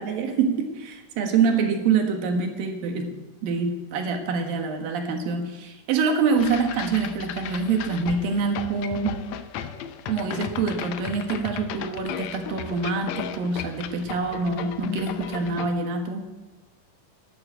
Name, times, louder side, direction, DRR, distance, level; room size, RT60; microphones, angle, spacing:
voice 1, 0.0-3.1 3.4-9.2 10.1-16.2, right 5 dB, 80° right, 4 dB, 3.3 m, -25 dB
sound 1, 6.4-15.7, left 9 dB, 90° left, 1.5 m, -35 dB
11.5 x 9.7 x 8.0 m, 1.2 s
omnidirectional pair, 4.0 m